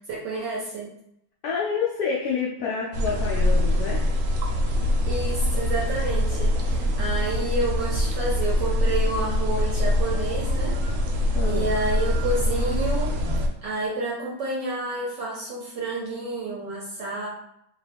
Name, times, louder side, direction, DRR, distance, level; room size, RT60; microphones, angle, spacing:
voice 1, 0.1-0.9 5.1-10.7 11.5-13.2 13.6-17.3, right 2 dB, 65° right, -5 dB, 1.2 m, -29 dB
voice 2, 1.4-4.1 11.3-11.7, left 5 dB, 85° left, -4 dB, 0.8 m, -28 dB
sound 1, 2.9-13.5, left 1 dB, 85° right, 1.4 m, -24 dB
3.1 x 2.3 x 3.3 m, 0.76 s
omnidirectional pair, 2.2 m